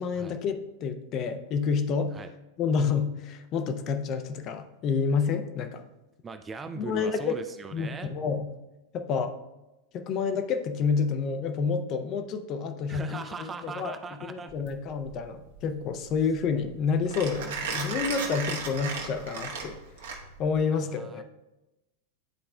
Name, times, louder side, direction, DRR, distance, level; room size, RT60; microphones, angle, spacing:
voice 1, 0.0-2.1 2.6-5.8 6.8-7.4 7.7-8.5 8.9-9.3 9.9-13.9 14.3-19.8 20.4-21.2, left 5 dB, 35° left, 7 dB, 0.5 m, -29 dB
voice 2, 6.2-8.1 12.9-14.5 20.7-21.2, right 4 dB, 20° right, 8 dB, 0.3 m, -39 dB
Mechanisms, 14.5-20.6, right 5 dB, 60° right, 1.0 m, -36 dB
10.5 x 4.2 x 2.2 m, 1.0 s
figure-of-eight pair, 90°, 0 cm